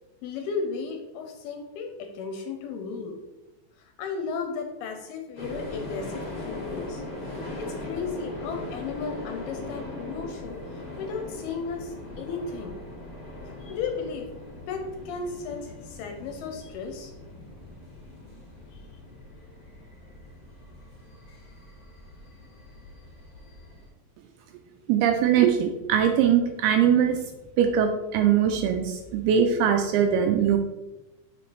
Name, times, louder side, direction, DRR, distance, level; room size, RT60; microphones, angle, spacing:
voice 1, 0.2-3.2 3.8-7.0 7.6-12.8 13.5-14.3 14.7-17.1 18.7-18.8, left 5 dB, 80° left, 4 dB, 2.4 m, -35 dB
sound 1, 5.4-23.9, left 2 dB, 50° left, 1.0 m, -40 dB
voice 2, 24.9-27.2 27.6-30.6, right 8 dB, 85° right, 5 dB, 2.3 m, -21 dB
7.1 x 6.9 x 3.2 m, 1.1 s
omnidirectional pair, 4.9 m